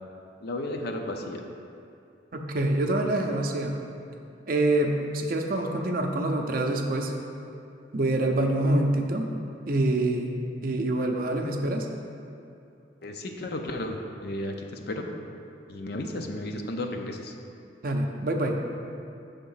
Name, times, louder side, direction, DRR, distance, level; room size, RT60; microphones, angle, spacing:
voice 1, 0.4-1.4 13.0-15.1 15.7-17.3, left 1 dB, 55° left, 3 dB, 0.5 m, -33 dB
voice 2, 2.3-3.8 4.5-7.1 7.9-9.3 9.7-11.9 17.8-18.6, right 1 dB, 50° right, 2 dB, 0.5 m, -26 dB
6.8 x 3.5 x 5.6 m, 2.7 s
head